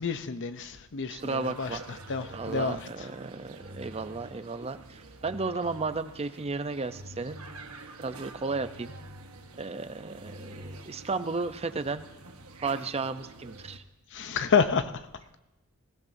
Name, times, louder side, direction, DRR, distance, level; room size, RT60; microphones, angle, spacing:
voice 1, 0.0-1.7 2.1-2.9 14.1-14.9, left 6 dB, 55° left, 11 dB, 0.7 m, -28 dB
voice 2, 1.1-1.8 2.3-7.4 8.0-8.9 9.6-12.1 12.6-13.8, right 3 dB, 30° right, 10 dB, 0.6 m, -34 dB
sound 1, 1.2-13.8, right 2 dB, 70° right, 1.2 m, -47 dB
20.5 x 16.0 x 2.7 m, 1.0 s
head